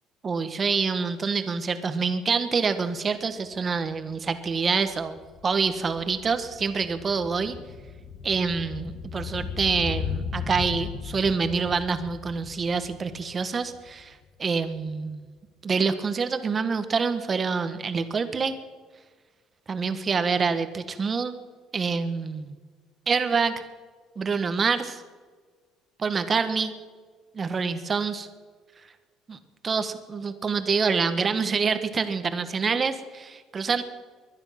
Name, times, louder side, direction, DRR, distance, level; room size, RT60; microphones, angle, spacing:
voice 1, 0.2-7.6 8.2-15.3 15.6-18.6 19.7-21.4 21.7-22.6 23.1-23.6 24.1-25.0 26.0-26.7 27.3-28.3 29.3-29.4 29.6-33.8, right 5 dB, 30° right, 10 dB, 1.5 m, -26 dB
sound 1, 3.5-3.6 3.9-14.2 14.5-14.6, left 6 dB, 60° left, 2.2 m, -37 dB
23.0 x 10.0 x 5.9 m, 1.4 s
cardioid pair, 130°, 0 cm